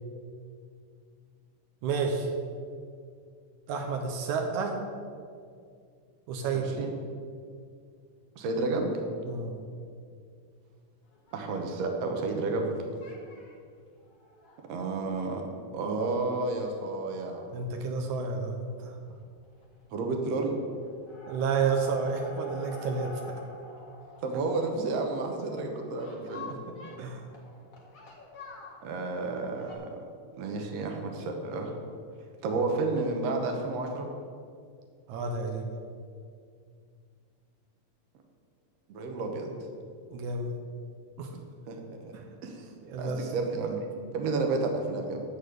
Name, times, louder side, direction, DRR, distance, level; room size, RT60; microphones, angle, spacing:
voice 1, 1.8-2.3 3.7-4.8 6.3-6.7 9.3-9.6 17.5-19.0 21.3-23.2 26.5-26.6 27.0-27.2 35.1-35.7 40.1-40.5 41.2-41.3 42.1-42.2 42.8-43.3, right 4 dB, 80° right, 3 dB, 2.3 m, -30 dB
voice 2, 6.5-6.9 8.4-8.9 11.3-12.7 14.7-15.4 15.7-17.5 19.9-20.6 24.2-26.5 28.8-30.0 30.4-31.8 32.4-34.1 38.9-39.5 41.7-41.8 42.1-42.2 42.4-42.7 43.0-45.2, right 3 dB, 65° right, 3 dB, 2.2 m, -31 dB
sound 1, 11.1-12.7 13.0-13.5 14.0-16.1 16.5-16.6 16.8-16.9 17.2-17.3 18.7-18.9 19.2-19.7 19.9-20.5 20.8-29.7, left 2 dB, 40° left, 1.4 m, -48 dB
13.0 x 4.3 x 8.3 m, 2.2 s
omnidirectional pair, 3.4 m